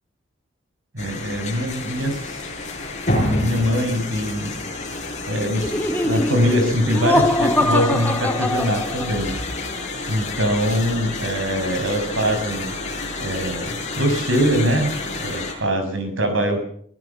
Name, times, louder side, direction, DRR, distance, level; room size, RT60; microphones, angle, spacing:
voice 1, 0.9-2.4 3.2-4.5 5.3-9.3 10.1-12.7 13.2-16.6, equal, 85° right, 7 dB, 6.2 m, -23 dB
sound 1, 1.0-15.5, left 2 dB, 35° left, 7.6 m, -29 dB
Laughter, 5.6-9.3, left 1 dB, 10° left, 1.5 m, -22 dB
24.0 x 15.5 x 7.2 m, 0.65 s
head